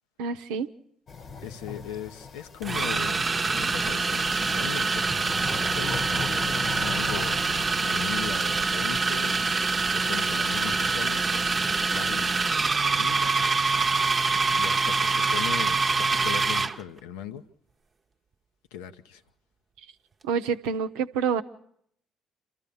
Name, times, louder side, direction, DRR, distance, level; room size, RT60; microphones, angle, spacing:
voice 1, 0.2-0.7 20.2-21.4, right 6 dB, 80° right, 0.7 m, -27 dB
sound 1, 1.1-8.3, left 5 dB, 50° left, 1.1 m, -40 dB
sound 2, 1.3-1.5 2.6-16.8, right 4 dB, 35° right, 0.8 m, -25 dB
voice 2, 1.4-3.2 3.5-7.4 7.8-9.5 9.9-13.3 14.5-17.4 18.7-19.2, left 10 dB, 80° left, 0.7 m, -39 dB
28.0 x 13.5 x 7.0 m
hypercardioid pair, 50°, 0 cm